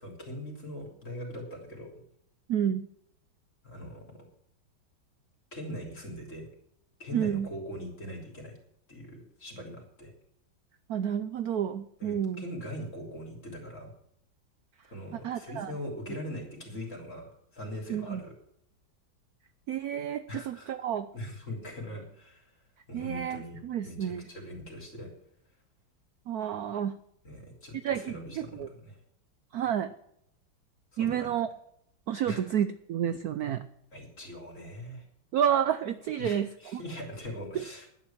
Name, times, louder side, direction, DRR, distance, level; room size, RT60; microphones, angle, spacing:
voice 1, 0.0-2.0 3.6-4.0 5.5-6.5 7.0-8.6 8.9-10.1 12.0-13.9 14.9-18.3 20.3-20.7 21.1-22.4 22.9-23.6 23.8-25.1 27.2-29.0 30.9-31.3 32.3-32.4 33.9-35.0 36.2-37.9, equal, 35° left, 0 dB, 3.7 m, -41 dB
voice 2, 2.5-2.9 7.1-7.5 10.9-12.4 15.2-15.7 17.9-18.2 19.7-21.1 22.9-24.3 26.3-26.9 27.7-28.7 29.5-29.9 31.0-31.5 32.1-33.6 35.3-36.8 37.5-37.6, right 9 dB, 65° right, 11 dB, 0.9 m, -30 dB
11.5 x 9.8 x 7.2 m, 0.74 s
omnidirectional pair, 2.2 m